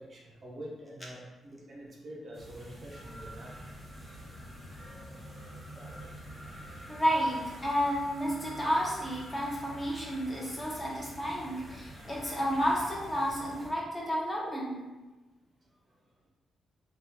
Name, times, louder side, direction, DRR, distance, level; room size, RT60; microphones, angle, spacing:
voice 1, 0.0-3.6, right 1 dB, 35° right, -2 dB, 0.5 m, -46 dB
sound 1, 2.3-13.7, equal, 15° right, 0.8 m, -47 dB
voice 2, 6.9-14.8, equal, 15° left, -4 dB, 0.7 m, -31 dB
3.4 x 2.2 x 2.8 m, 1.1 s
cardioid pair, 145°, 0 cm